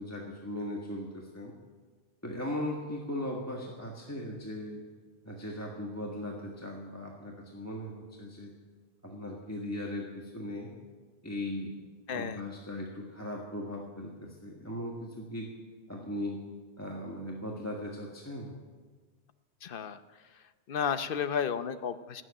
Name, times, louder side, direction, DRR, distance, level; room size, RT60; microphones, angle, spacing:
voice 1, 0.0-1.5 2.2-4.8 5.2-8.5 9.0-10.7 11.2-11.7 12.1-15.5 15.9-16.4 16.8-18.6, left 1 dB, 15° left, -2 dB, 1.6 m, -38 dB
voice 2, 12.1-12.4 19.6-20.0 20.3-22.2, left 7 dB, 55° left, 11 dB, 0.9 m, -33 dB
17.0 x 7.9 x 10.0 m, 1.4 s
omnidirectional pair, 1.1 m